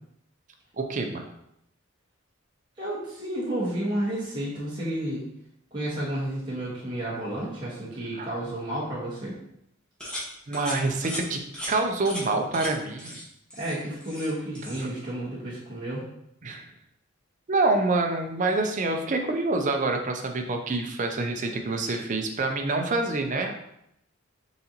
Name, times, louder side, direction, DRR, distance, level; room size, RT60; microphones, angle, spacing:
voice 1, 0.8-1.2 8.1-8.3 10.5-11.4 11.7-13.2 14.8-14.9 16.4-16.7 17.5-23.5, right 3 dB, 40° right, 4 dB, 0.5 m, -26 dB
voice 2, 2.8-5.2 5.7-9.3 13.6-16.0, right 1 dB, 20° right, -8 dB, 1.1 m, -31 dB
sound 1, 10.0-10.3 10.5-10.8 11.0-11.2 11.5-11.7 12.1-12.2 12.5-12.7 13.0-13.2 13.5-14.3 14.6-14.8, equal, 5° left, 1.2 m, -36 dB
4.1 x 3.8 x 2.8 m, 0.78 s
head